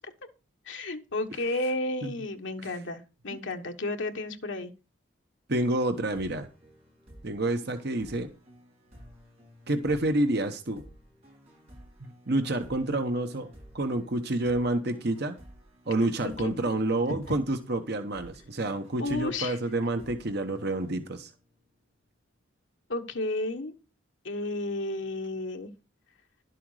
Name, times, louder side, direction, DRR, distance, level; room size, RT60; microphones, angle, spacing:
voice 1, 0.7-4.7 16.4-16.8 19.0-19.6 22.9-23.7 24.2-25.7, left 2 dB, 70° left, 4 dB, 1.3 m, -32 dB
voice 2, 5.5-6.5 7.2-8.3 9.7-10.8 12.3-13.5 13.7-15.4 15.9-21.3, right 2 dB, 55° right, 8 dB, 1.0 m, -28 dB
sound 1, 6.1-21.6, equal, 35° right, 7.3 m, -53 dB
11.5 x 7.7 x 4.9 m, 0.31 s
head